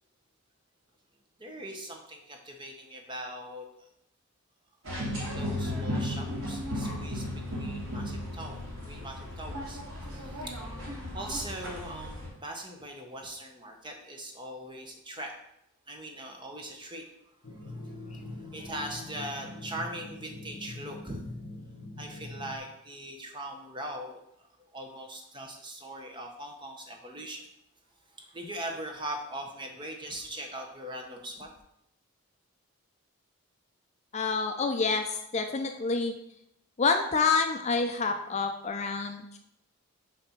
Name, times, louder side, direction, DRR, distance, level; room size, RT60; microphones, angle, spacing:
voice 1, 1.4-3.9 5.1-9.8 10.1-10.5 11.1-15.3 15.9-17.1 17.4-21.5 22.0-27.4 28.2-31.5, right 1 dB, 20° right, 2 dB, 0.9 m, -41 dB
sound 1, 4.8-12.3, left 1 dB, 70° right, 2.4 m, -35 dB
sound 2, 17.4-22.6, left 2 dB, 55° left, 1.0 m, -43 dB
voice 2, 34.1-35.0 35.3-36.1 36.8-39.4, left 4 dB, 30° left, 5 dB, 0.4 m, -27 dB
6.9 x 3.4 x 5.8 m, 0.78 s
head